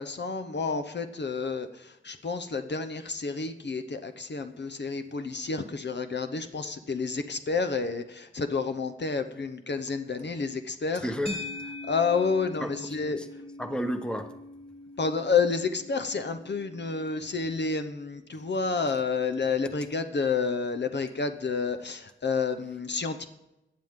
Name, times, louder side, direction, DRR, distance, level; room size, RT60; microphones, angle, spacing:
voice 1, 0.0-11.0 11.9-13.2 15.0-23.3, left 4 dB, 60° left, 8 dB, 0.8 m, -30 dB
voice 2, 10.9-11.4 12.6-13.3 13.6-14.4, equal, 5° left, 7 dB, 1.1 m, -33 dB
sound 1, 11.3-19.7, left 2 dB, 30° left, 3.5 m, -44 dB
17.5 x 10.5 x 3.7 m, 0.93 s
wide cardioid pair, 85°, 20 cm